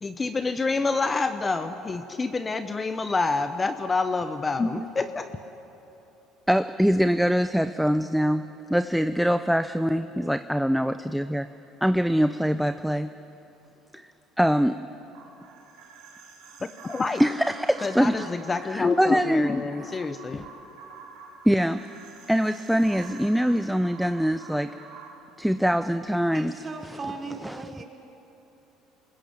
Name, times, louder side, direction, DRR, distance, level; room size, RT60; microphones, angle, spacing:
voice 1, 0.0-5.3 16.8-17.2 17.8-20.5, left 3 dB, 20° left, 10 dB, 0.9 m, -27 dB
voice 2, 6.5-11.5 11.8-13.1 13.9-14.1 14.4-14.8 17.2-18.3 18.6-19.5 19.8-19.9 21.4-21.8 22.3-24.7 25.4-26.5 27.4-27.7, equal, ahead, 10 dB, 0.5 m, -23 dB
sound 1, 15.1-25.1, right 5 dB, 80° right, 5.7 m, -47 dB
voice 3, 26.3-27.8, right 3 dB, 25° right, 3 dB, 3.4 m, -37 dB
25.0 x 21.0 x 8.7 m, 3.0 s
cardioid pair, 120°, 0 cm